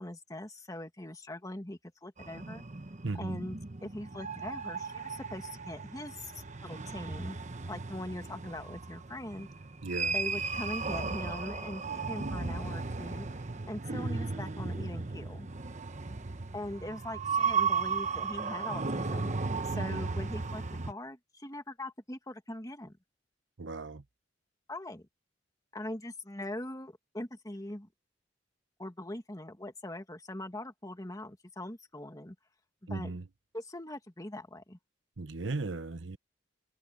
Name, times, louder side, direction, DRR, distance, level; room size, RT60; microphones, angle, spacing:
voice 1, 0.0-2.6 3.1-7.4 7.7-9.5 10.1-15.5 16.5-19.3 19.6-22.9 24.7-25.0 25.7-27.9 28.8-32.4 32.9-33.2 33.5-34.8, left 1 dB, 20° left, 2.1 m, -41 dB
sound 1, 2.2-20.9, right 4 dB, 40° right, 1.0 m, -35 dB
voice 2, 3.0-3.4 9.8-10.1 19.7-20.0 23.6-24.0 32.9-33.2 35.2-36.2, right 3 dB, 80° right, 1.0 m, -36 dB
head